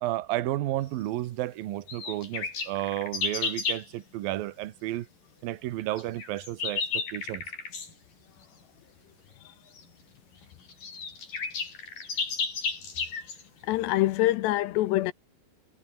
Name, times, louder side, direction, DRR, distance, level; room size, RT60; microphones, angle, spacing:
voice 1, 0.0-5.1 5.4-7.4, right 15 dB, 70° right, 2.4 m, -32 dB
sound 1, 1.9-3.9 6.0-7.9 9.8-9.9 10.4-10.5 10.7-13.4, left 5 dB, 45° left, 7.0 m, -33 dB
voice 2, 13.6-15.1, left 16 dB, 75° left, 2.8 m, -25 dB
omnidirectional pair, 5.5 m